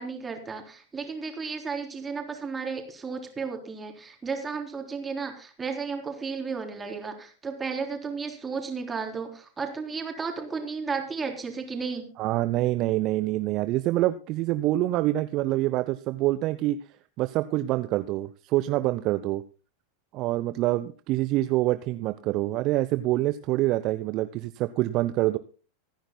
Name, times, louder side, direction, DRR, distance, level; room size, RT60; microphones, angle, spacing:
voice 1, 0.0-12.1, right 5 dB, 15° right, 4 dB, 3.8 m, -33 dB
voice 2, 12.2-16.8 17.2-19.4 20.1-25.4, right 16 dB, 40° right, 13 dB, 0.7 m, -26 dB
26.0 x 10.5 x 2.2 m, 0.35 s
figure-of-eight pair, 90°, 0 cm